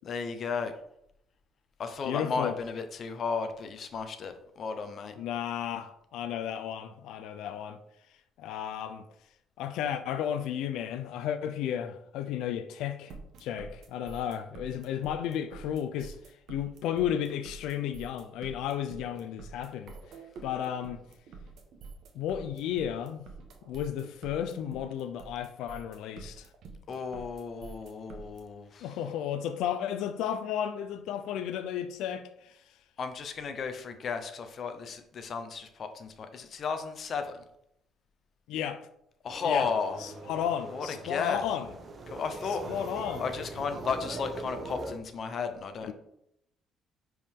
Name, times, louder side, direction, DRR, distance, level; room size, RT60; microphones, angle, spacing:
voice 1, 0.0-0.7 1.8-5.1 26.9-29.1 33.0-37.4 39.2-40.0 40.7-41.4 42.1-42.6 43.2-45.9, left 5 dB, 35° left, 0.8 m, -34 dB
voice 2, 2.0-2.6 5.2-7.8 8.4-9.0 9.6-13.1 13.4-16.2 16.5-20.0 20.4-21.0 22.1-23.2 23.7-26.5 28.8-32.6 38.5-38.8 39.4-39.7 40.0-41.7 42.7-43.2 45.8-45.9, left 9 dB, 80° left, 0.6 m, -33 dB
sound 1, 13.1-28.4, right 4 dB, 55° right, 1.3 m, -47 dB
sound 2, 39.3-45.0, right 2 dB, 25° right, 0.8 m, -41 dB
10.0 x 4.7 x 3.7 m
cardioid pair, 180°, 0 cm